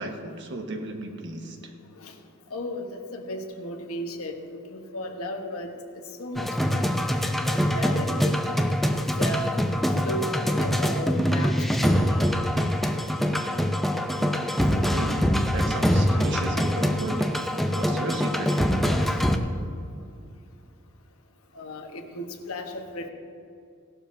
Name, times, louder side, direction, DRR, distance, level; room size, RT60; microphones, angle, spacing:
voice 1, 0.0-1.6 14.7-17.4 17.7-19.2, right 1 dB, 55° right, 3 dB, 1.2 m, -34 dB
voice 2, 2.5-6.9 7.4-8.7 9.0-9.6 10.0-12.2 15.1-15.2 19.1-19.2 21.5-23.1, left 1 dB, 80° left, 4 dB, 1.2 m, -35 dB
sound 1, 6.4-19.4, equal, ahead, 0.5 m, -24 dB
17.0 x 12.0 x 2.7 m, 2.4 s
head